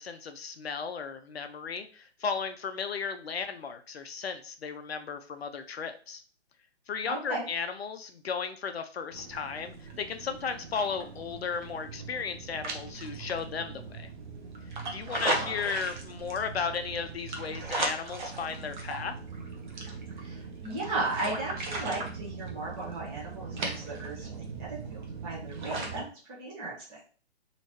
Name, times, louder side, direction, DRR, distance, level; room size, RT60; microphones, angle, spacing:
voice 1, 0.0-6.2 6.9-14.1 14.9-19.2, left 6 dB, 65° left, 8 dB, 0.5 m, -35 dB
voice 2, 7.1-7.4 15.3-15.5 20.2-27.0, right 2 dB, 15° right, -7 dB, 0.9 m, -36 dB
sound 1, 9.1-26.0, right 3 dB, 45° right, 0.8 m, -38 dB
3.0 x 2.8 x 3.0 m, 0.40 s
figure-of-eight pair, 135°, 34 cm